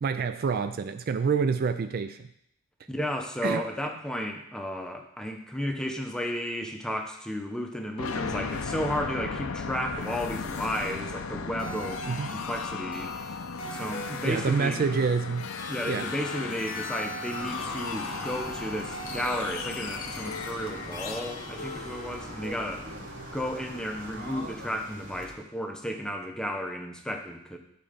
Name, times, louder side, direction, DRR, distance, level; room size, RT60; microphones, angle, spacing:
voice 1, 0.0-2.3 3.4-3.6 12.1-12.3 14.2-15.5 15.9-16.1, right 5 dB, 45° right, 9 dB, 0.3 m, -27 dB
voice 2, 2.9-13.4 13.7-14.8 15.7-22.9 23.3-27.6, equal, 5° left, 3 dB, 0.7 m, -33 dB
sound 1, 8.0-22.7, left 5 dB, 80° left, 0.6 m, -36 dB
sound 2, 11.6-22.3, equal, 40° left, 0.9 m, -42 dB
sound 3, 17.3-25.3, right 1 dB, 80° right, 1.5 m, -41 dB
9.8 x 4.2 x 5.1 m, 0.75 s
head